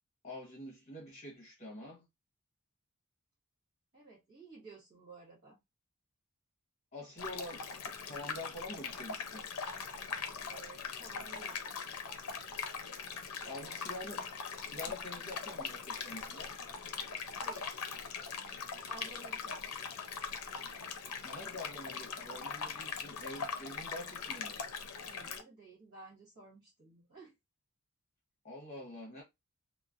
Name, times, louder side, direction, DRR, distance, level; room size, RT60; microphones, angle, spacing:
voice 1, 0.2-2.1 6.9-9.5 13.5-16.5 21.2-24.6 28.4-29.2, left 1 dB, 30° left, 1.0 m, -46 dB
voice 2, 3.9-5.6 10.3-11.6 13.1-13.8 14.8-15.0 17.4-17.8 18.9-19.7 25.1-27.3, right 3 dB, 50° right, 1.2 m, -54 dB
sound 1, 7.2-25.4, left 6 dB, 85° left, 0.6 m, -41 dB
3.0 x 2.1 x 2.5 m
head